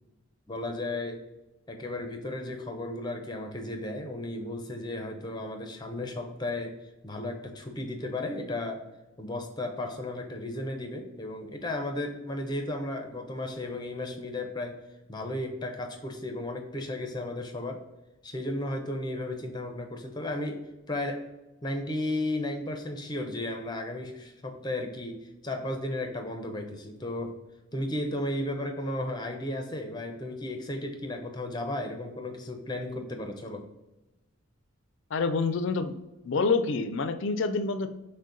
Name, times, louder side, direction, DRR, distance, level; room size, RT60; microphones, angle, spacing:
voice 1, 0.5-1.2 1.7-6.8 7.0-8.8 9.2-14.8 15.1-17.8 18.2-20.6 20.9-21.2 21.6-27.3 27.7-33.6, left 1 dB, 20° left, 4 dB, 0.6 m, -34 dB
voice 2, 35.1-35.9 36.2-37.9, left 4 dB, 65° left, 10 dB, 0.4 m, -27 dB
6.3 x 2.2 x 3.8 m, 1.0 s
head